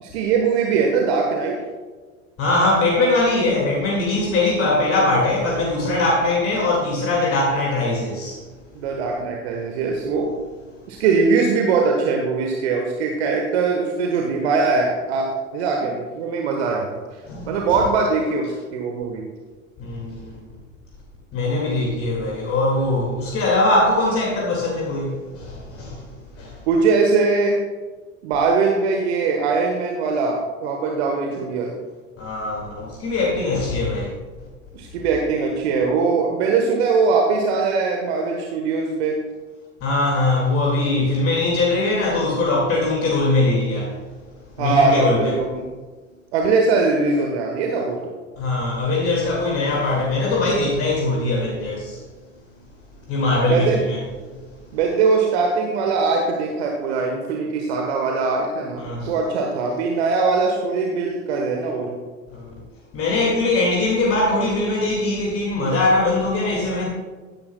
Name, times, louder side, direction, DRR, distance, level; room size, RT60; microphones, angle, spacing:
voice 1, 0.0-1.6 8.7-10.3 10.9-17.0 17.5-19.2 26.7-27.6 28.2-31.7 34.7-39.2 44.6-45.7 46.3-48.0 53.4-53.8 54.7-62.0, right 4 dB, 60° right, 1 dB, 1.3 m, -21 dB
voice 2, 2.4-8.4 17.2-17.6 19.8-20.4 21.3-26.6 32.2-34.2 39.8-44.0 44.6-45.3 48.4-52.0 53.1-54.0 58.8-59.1 62.3-62.6 62.9-66.8, left 2 dB, 35° left, -2 dB, 2.2 m, -21 dB
14.5 x 10.5 x 2.3 m, 1.4 s
figure-of-eight pair, 75°, 37 cm